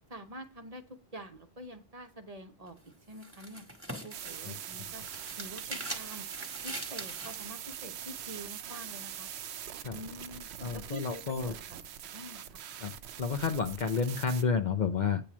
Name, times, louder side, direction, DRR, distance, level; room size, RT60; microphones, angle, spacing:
voice 1, 0.1-2.7 3.1-3.6 4.0-5.0 5.3-6.2 6.6-9.3 9.9-11.6 12.1-12.6, right 1 dB, 40° right, 6 dB, 0.8 m, -46 dB
sound 1, 2.7-7.5, right 1 dB, 15° right, 1.4 m, -43 dB
sound 2, 4.1-14.4, right 9 dB, 85° right, 0.8 m, -43 dB
voice 2, 10.6-11.5 12.8-12.9 13.2-15.2, left 5 dB, 55° left, 8 dB, 0.6 m, -30 dB
8.5 x 2.9 x 6.0 m, 0.31 s
omnidirectional pair, 1.1 m